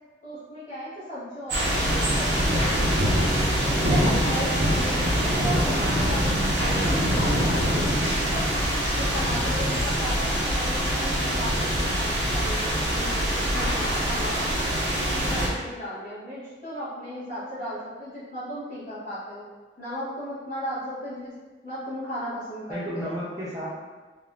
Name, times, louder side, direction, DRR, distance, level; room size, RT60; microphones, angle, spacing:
voice 1, 0.2-3.1 3.6-7.8 9.0-13.2 13.5-14.4 15.1-19.4 19.8-21.3 21.6-23.1, equal, 45° left, -17 dB, 1.1 m, -35 dB
sound 1, 1.5-15.5, equal, 75° right, 0.7 m, -24 dB
voice 2, 9.0-9.8 22.7-23.7, equal, 20° right, -9 dB, 0.4 m, -34 dB
3.4 x 2.3 x 2.2 m, 1.3 s
head